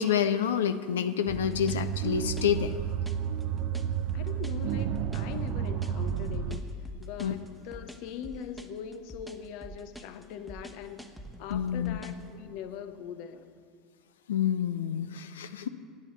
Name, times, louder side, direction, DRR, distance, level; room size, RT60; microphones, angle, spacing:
voice 1, 0.0-2.7 7.2-7.4 11.5-12.0 14.3-15.7, left 8 dB, 70° left, 11 dB, 0.5 m, -28 dB
sound 1, 1.3-12.3, right 1 dB, ahead, 1.1 m, -46 dB
sound 2, 1.3-6.6, right 8 dB, 50° right, 0.6 m, -31 dB
voice 2, 4.1-11.1 11.4-13.5, left 8 dB, 55° left, 9 dB, 0.9 m, -41 dB
9.8 x 8.7 x 9.1 m, 2.2 s
figure-of-eight pair, 75°, 0 cm